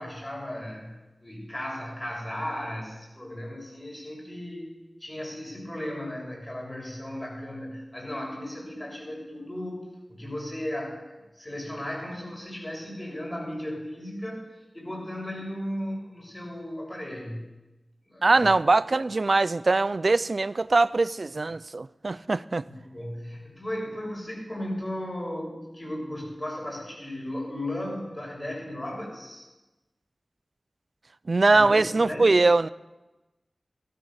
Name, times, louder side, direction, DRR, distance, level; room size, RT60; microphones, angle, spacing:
voice 1, 0.0-14.4 14.7-17.5 18.1-18.6 22.7-29.5 31.5-32.3, left 1 dB, 25° left, 6.8 m, -36 dB
voice 2, 18.2-22.6 31.3-32.7, right 3 dB, 60° right, 0.5 m, -22 dB
16.5 x 13.0 x 6.5 m
wide cardioid pair, 50°, 0 cm